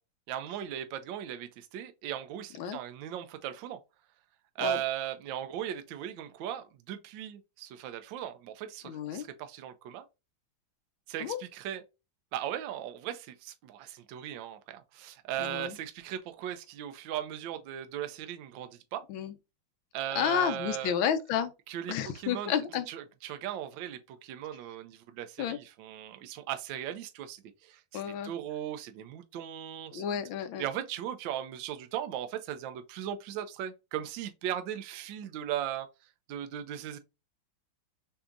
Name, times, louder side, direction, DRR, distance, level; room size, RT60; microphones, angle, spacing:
voice 1, 0.3-3.8 4.6-10.1 11.1-11.8 12.3-19.0 19.9-21.0 21.7-22.6 22.9-30.0 30.6-35.9 36.3-37.0, right 11 dB, 75° right, 1.2 m, -38 dB
voice 2, 8.8-9.3 11.2-11.4 15.4-15.8 19.1-19.3 20.1-21.5 21.9-22.9 25.4-25.6 27.9-28.3 29.9-30.7, left 8 dB, 80° left, 1.4 m, -31 dB
6.9 x 2.7 x 2.5 m
omnidirectional pair, 2.2 m